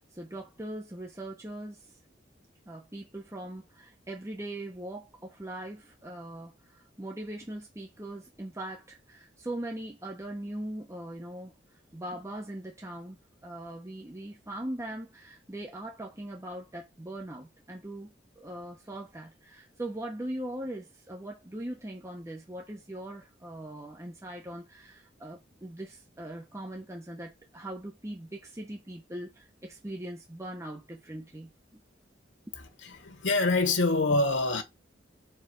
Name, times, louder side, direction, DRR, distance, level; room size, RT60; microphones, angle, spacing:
voice 1, 0.1-1.9 2.7-11.5 11.9-13.2 13.4-31.8, right 1 dB, 15° right, 1.1 m, -40 dB
voice 2, 32.5-34.6, left 3 dB, 85° left, 1.2 m, -26 dB
5.0 x 4.6 x 4.7 m
head